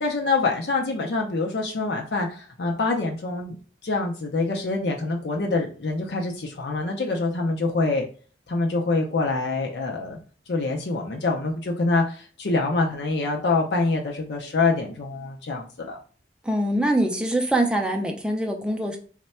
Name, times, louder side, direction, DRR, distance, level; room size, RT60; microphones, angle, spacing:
voice 1, 0.0-3.6 3.8-8.1 8.5-10.2 10.5-16.0, left 3 dB, 70° left, 1 dB, 0.5 m, -25 dB
voice 2, 16.4-19.0, right 1 dB, 5° right, 2 dB, 0.4 m, -23 dB
3.2 x 2.1 x 4.2 m, 0.40 s
head